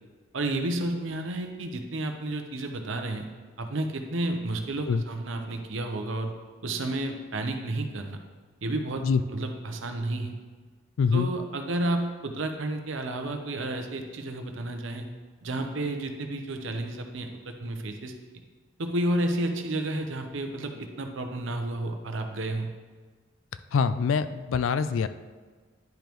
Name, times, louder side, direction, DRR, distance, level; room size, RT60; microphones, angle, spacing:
voice 1, 0.3-3.3 3.6-6.3 6.6-8.2 8.6-9.0 9.3-10.3 11.1-15.1 15.4-18.1 18.8-22.7, right 1 dB, 70° right, 5 dB, 0.7 m, -31 dB
voice 2, 11.0-11.3 23.7-25.1, left 5 dB, 70° left, 12 dB, 0.3 m, -24 dB
10.5 x 5.2 x 3.0 m, 1.5 s
head